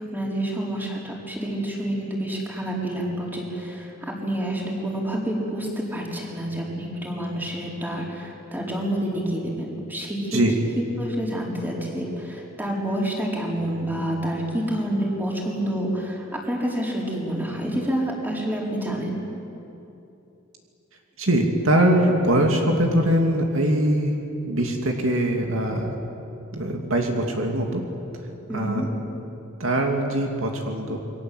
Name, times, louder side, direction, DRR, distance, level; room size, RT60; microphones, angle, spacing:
voice 1, 0.0-10.4 10.8-19.2 28.5-28.9, right 1 dB, 10° right, -2 dB, 4.7 m, -28 dB
voice 2, 21.2-24.2 24.4-25.9 26.5-27.8 28.5-28.9 29.6-31.0, right 1 dB, 70° right, 2 dB, 2.7 m, -22 dB
28.0 x 23.0 x 8.0 m, 2.9 s
head